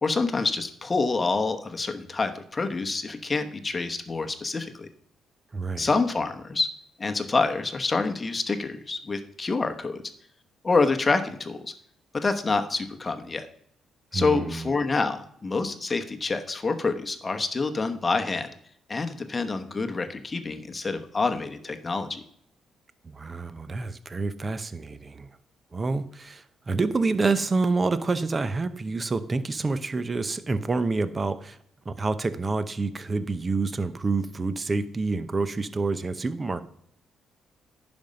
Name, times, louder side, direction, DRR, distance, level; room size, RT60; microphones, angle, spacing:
voice 1, 0.0-4.9 5.8-6.7 7.0-10.0 10.6-11.7 12.1-13.5 14.1-18.5 18.9-22.2, left 3 dB, 25° left, 7 dB, 1.0 m, -27 dB
voice 2, 5.5-5.9 14.1-14.7 23.0-25.3 25.7-31.6 31.8-36.6, right 3 dB, 30° right, 14 dB, 0.7 m, -28 dB
10.5 x 5.3 x 5.3 m, 0.67 s
cardioid pair, 90°, 0 cm